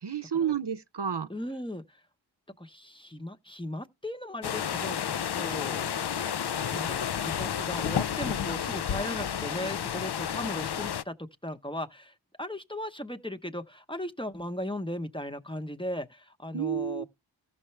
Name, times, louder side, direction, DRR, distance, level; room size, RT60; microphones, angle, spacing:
voice 1, 0.0-1.3 16.5-17.0, right 8 dB, 60° right, 0.7 m, -30 dB
voice 2, 1.3-1.8 2.6-6.0 6.7-17.0, left 1 dB, 10° left, 0.8 m, -37 dB
sound 1, 4.4-11.0, left 8 dB, 60° left, 0.5 m, -31 dB
15.0 x 5.7 x 3.2 m
wide cardioid pair, 50°, 47 cm